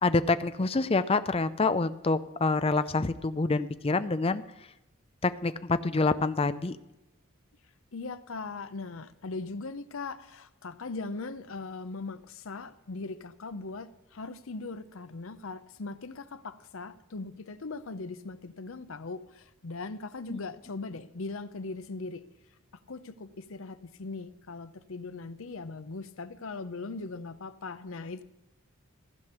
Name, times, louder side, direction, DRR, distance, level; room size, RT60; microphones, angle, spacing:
voice 1, 0.0-4.4 5.2-6.8 20.3-20.4, left 3 dB, 25° left, 13 dB, 0.5 m, -27 dB
voice 2, 7.9-22.2 22.9-28.2, left 3 dB, 65° left, 13 dB, 0.7 m, -39 dB
15.5 x 5.3 x 8.1 m, 0.96 s
head